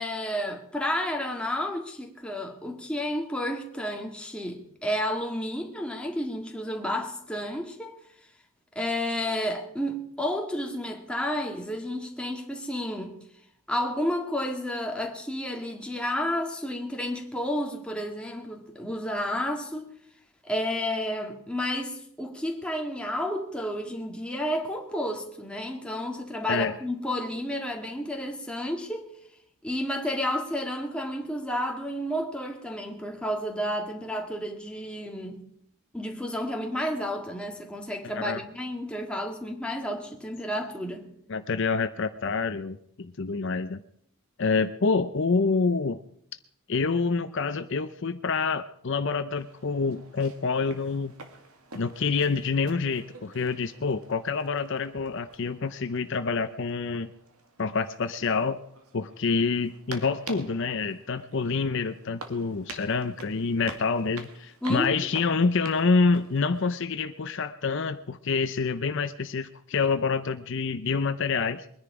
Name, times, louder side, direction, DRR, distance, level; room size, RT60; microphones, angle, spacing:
voice 1, 0.0-8.0 8.8-13.2 13.7-19.9 20.4-29.1 29.6-35.5 35.9-41.1 64.6-64.9, equal, 5° left, 1.8 m, -31 dB
voice 2, 38.0-38.4 41.3-43.8 44.4-46.0 46.7-51.2 51.7-57.1 57.6-58.6 58.9-71.7, left 4 dB, 55° left, 0.6 m, -27 dB
sound 1, 49.4-66.8, right 3 dB, 80° right, 2.1 m, -48 dB
22.0 x 10.5 x 4.9 m
head